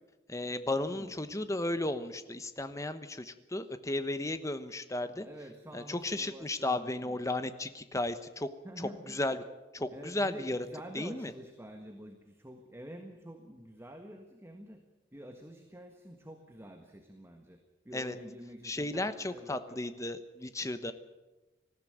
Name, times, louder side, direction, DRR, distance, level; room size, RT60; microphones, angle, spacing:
voice 1, 0.3-5.3 5.7-8.5 8.8-9.4 9.7-10.7 10.9-11.3 17.9-18.2 18.6-20.9, left 2 dB, 15° left, 11 dB, 1.1 m, -34 dB
voice 2, 0.8-1.2 5.2-7.2 8.6-9.2 9.9-14.8 15.1-17.6 17.8-19.8, equal, 15° right, 4 dB, 1.5 m, -48 dB
19.5 x 14.5 x 9.4 m, 1.1 s
head